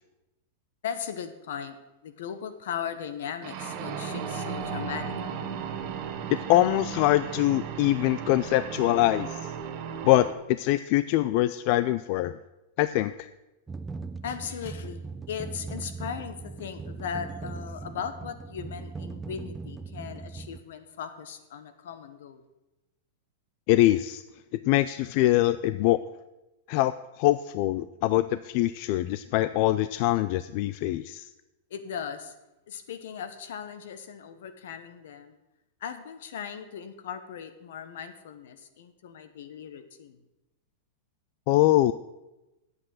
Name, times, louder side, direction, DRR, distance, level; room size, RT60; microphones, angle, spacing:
voice 1, 0.8-1.8 2.0-5.5 14.2-22.4 31.7-32.3 32.7-35.3 35.8-40.2, left 8 dB, 75° left, 10 dB, 1.2 m, -38 dB
sound 1, 3.4-10.3, right 7 dB, 45° right, 1.3 m, -35 dB
voice 2, 6.3-9.5 10.0-12.4 12.8-13.3 23.7-24.2 24.5-26.0 26.7-26.9 27.2-31.3 41.5-41.9, left 15 dB, 50° left, 14 dB, 0.3 m, -23 dB
sound 2, 13.7-20.6, right 4 dB, 10° right, 0.6 m, -39 dB
8.8 x 7.8 x 7.7 m, 1.0 s
supercardioid pair, 140°, 0 cm